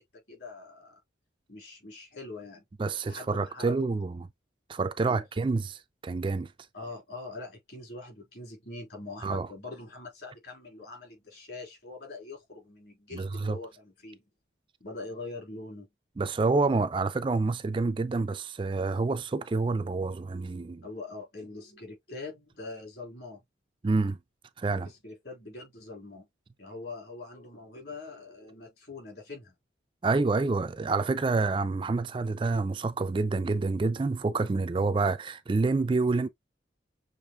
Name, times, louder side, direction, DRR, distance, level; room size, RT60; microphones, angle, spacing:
voice 1, 0.3-1.0 1.5-2.6 3.0-3.8 5.0-5.2 6.7-14.2 14.8-15.9 20.8-23.4 24.7-26.3 26.6-29.5, left 3 dB, 55° left, 3.4 m, -43 dB
voice 2, 2.8-4.3 4.7-6.5 9.2-9.5 13.1-13.6 16.2-20.8 23.8-24.2 24.6-24.9 30.0-36.3, right 3 dB, 25° right, 0.3 m, -28 dB
6.6 x 3.2 x 2.3 m
head